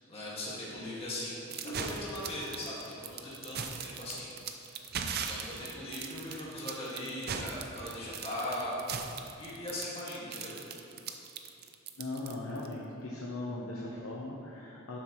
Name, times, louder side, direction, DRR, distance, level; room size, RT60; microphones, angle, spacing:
voice 1, 0.1-4.3 4.6-4.8 5.3-9.1 9.4-10.5, left 1 dB, 30° left, -7 dB, 2.0 m, -39 dB
sound 1, 1.5-12.7, right 6 dB, 50° right, 0.5 m, -39 dB
voice 2, 12.0-15.0, left 2 dB, 75° left, -4 dB, 0.9 m, -39 dB
12.0 x 7.3 x 3.1 m, 2.8 s
head